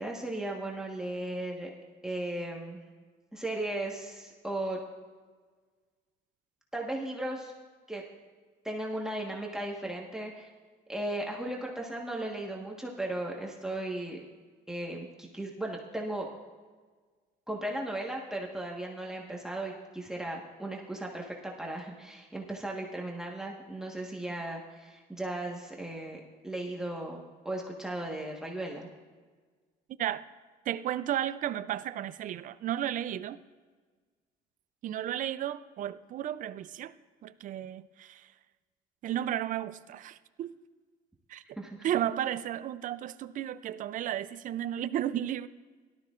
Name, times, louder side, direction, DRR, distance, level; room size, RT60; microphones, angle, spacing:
voice 1, 0.0-1.7 2.0-2.8 3.3-4.8 6.7-7.5 7.9-8.0 8.6-10.5 10.9-14.2 14.7-16.3 17.5-28.9 41.6-41.8, right 1 dB, 5° right, -2 dB, 1.4 m, -36 dB
voice 2, 30.7-33.4 34.8-36.9 37.2-38.3 39.0-40.5 41.3-41.4 41.8-45.5, right 11 dB, 50° right, 13 dB, 0.5 m, -33 dB
17.5 x 12.5 x 2.5 m, 1.5 s
cardioid pair, 110°, 17 cm